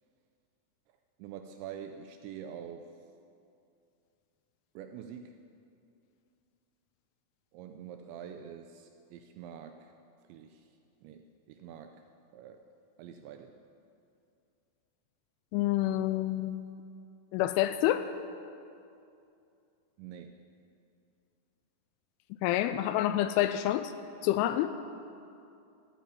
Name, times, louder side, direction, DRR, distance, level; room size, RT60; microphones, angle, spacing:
voice 1, 1.2-2.9 4.8-5.3 7.5-9.9 10.3-10.6 11.0-12.0 12.3-12.6 13.0-13.5 20.0-20.4, right 8 dB, 80° right, 6 dB, 2.7 m, -46 dB
voice 2, 15.5-16.6 17.3-18.1 22.4-23.9 24.2-24.7, left 13 dB, 85° left, 11 dB, 2.9 m, -28 dB
15.5 x 9.4 x 9.7 m, 2.6 s
omnidirectional pair, 5.8 m